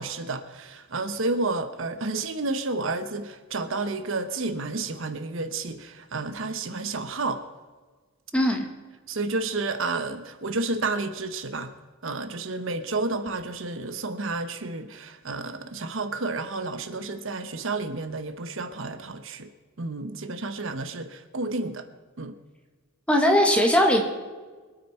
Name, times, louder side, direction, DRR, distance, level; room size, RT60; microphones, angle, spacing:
voice 1, 0.0-7.4 9.1-11.7 12.0-19.5 19.8-21.9 22.2-22.3, right 3 dB, 60° right, 9 dB, 0.9 m, -31 dB
voice 2, 8.3-8.7 23.1-24.0, equal, 5° left, 2 dB, 1.7 m, -19 dB
25.0 x 9.2 x 4.3 m, 1.4 s
head